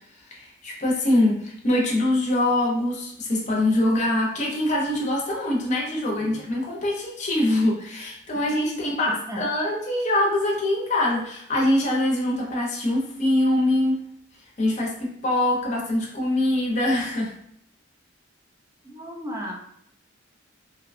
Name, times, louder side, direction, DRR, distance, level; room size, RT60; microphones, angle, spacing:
voice 1, 0.3-14.0 14.6-17.3, left 1 dB, 35° left, -2 dB, 0.6 m, -23 dB
voice 2, 6.1-6.4 8.7-9.4 18.8-19.5, equal, 15° right, -1 dB, 0.4 m, -36 dB
2.7 x 2.1 x 2.4 m, 0.70 s
head